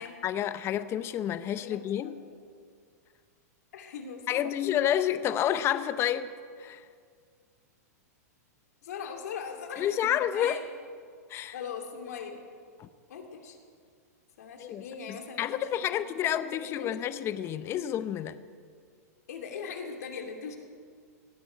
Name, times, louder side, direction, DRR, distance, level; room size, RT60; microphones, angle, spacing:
voice 1, 0.0-2.2 4.3-6.3 6.6-6.8 9.8-10.6 11.3-11.6 12.8-12.9 14.6-14.8 15.1-18.4, left 10 dB, 30° left, 13 dB, 0.7 m, -29 dB
voice 2, 1.6-2.3 3.7-4.6 8.8-10.6 11.5-12.4 13.1-13.6 14.4-17.0 19.3-20.6, left 6 dB, 70° left, 3 dB, 2.6 m, -40 dB
17.5 x 8.3 x 9.4 m, 2.1 s
hypercardioid pair, 125°, 9 cm